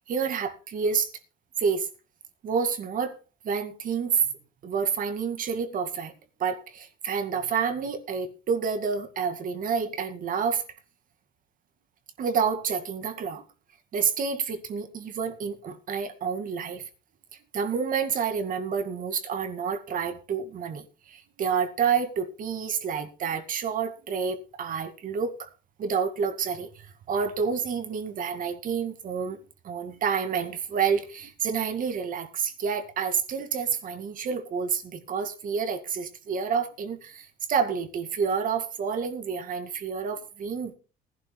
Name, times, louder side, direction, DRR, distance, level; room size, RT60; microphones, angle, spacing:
voice 1, 0.1-1.1 1.6-1.9 2.4-3.2 3.4-4.2 4.6-6.1 6.4-10.6 12.2-13.4 13.9-16.8 17.5-25.5 25.8-26.7 27.1-29.4 29.6-40.7, right 6 dB, 55° right, 2.1 m, -29 dB
20.0 x 11.5 x 2.3 m
cardioid pair, 110°, 17 cm